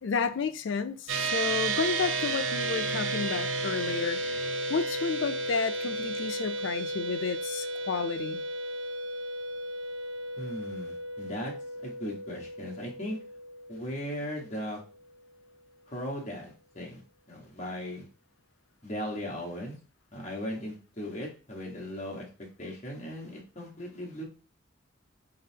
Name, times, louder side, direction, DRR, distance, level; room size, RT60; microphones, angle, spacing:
voice 1, 0.0-4.2 4.7-8.4, left 5 dB, 75° left, 0.4 m, -31 dB
sound 1, 1.1-14.7, right 2 dB, 80° right, 0.5 m, -33 dB
voice 2, 10.4-11.5 11.8-13.2 13.7-14.8 15.9-17.0 17.3-18.1 18.8-19.7 20.1-24.2, equal, 35° left, 1.2 m, -37 dB
4.0 x 3.9 x 2.8 m
head